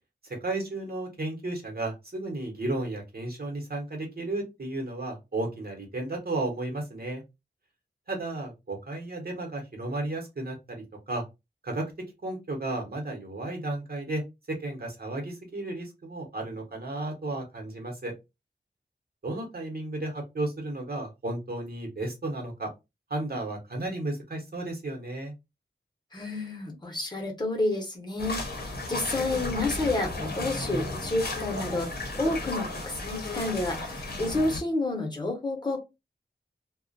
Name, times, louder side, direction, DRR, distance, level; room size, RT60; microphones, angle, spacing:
voice 1, 0.2-7.2 8.1-11.2 11.6-11.8 12.2-14.2 14.5-18.1 19.2-22.7 23.1-25.3, right 2 dB, 60° right, 1 dB, 0.9 m, -33 dB
voice 2, 26.1-35.8, left 2 dB, 25° left, 1 dB, 0.8 m, -30 dB
sound 1, 28.2-34.6, left 2 dB, 60° left, 0.7 m, -34 dB
2.3 x 2.1 x 2.4 m, 0.23 s
wide cardioid pair, 95°, 18 cm